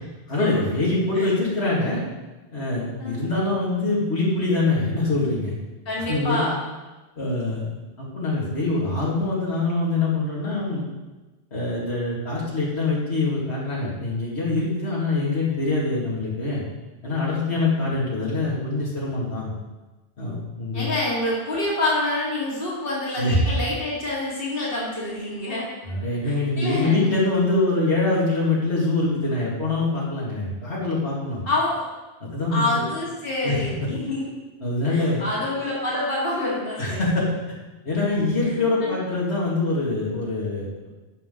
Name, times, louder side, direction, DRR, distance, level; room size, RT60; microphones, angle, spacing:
voice 1, 0.3-2.0 2.5-5.6 6.1-6.5 7.2-7.7 8.0-10.8 11.5-16.6 17.0-19.5 20.2-20.9 23.2-23.4 25.8-31.4 32.2-32.8 33.4-33.6 34.6-35.2 36.8-37.3 37.9-40.7, left 2 dB, 75° left, -6 dB, 2.6 m, -24 dB
voice 2, 5.9-6.6 20.7-25.7 26.2-27.1 31.4-31.9 32.5-34.2 34.9-37.0 38.4-39.0, left 2 dB, 55° left, -6 dB, 2.4 m, -27 dB
15.5 x 5.8 x 3.8 m, 1.2 s
omnidirectional pair, 1.1 m